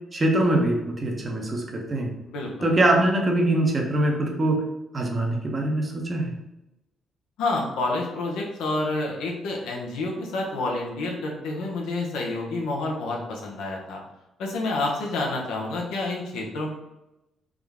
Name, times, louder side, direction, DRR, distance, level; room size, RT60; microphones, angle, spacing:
voice 1, 0.1-2.1 2.6-4.6 4.9-6.3, right 1 dB, 30° right, 1 dB, 0.8 m, -23 dB
voice 2, 2.3-2.7 7.4-14.0 14.4-16.7, left 2 dB, 90° left, -1 dB, 0.8 m, -29 dB
3.6 x 2.1 x 3.5 m, 0.93 s
cardioid pair, 90°, 0 cm